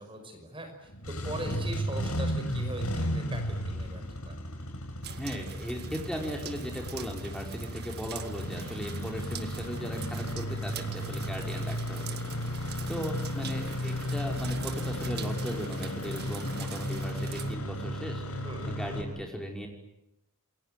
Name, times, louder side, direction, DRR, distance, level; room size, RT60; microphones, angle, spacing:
voice 1, 0.0-4.4 18.4-18.8, right 1 dB, 25° right, 5 dB, 5.6 m, -40 dB
Engine starting, 0.9-19.0, equal, 75° left, 5.6 m, -34 dB
sound 1, 5.0-17.5, right 9 dB, 50° right, 1.7 m, -45 dB
voice 2, 5.2-12.2 12.9-19.7, equal, 5° left, 1 dB, 5.1 m, -38 dB
28.5 x 22.0 x 9.2 m, 0.87 s
head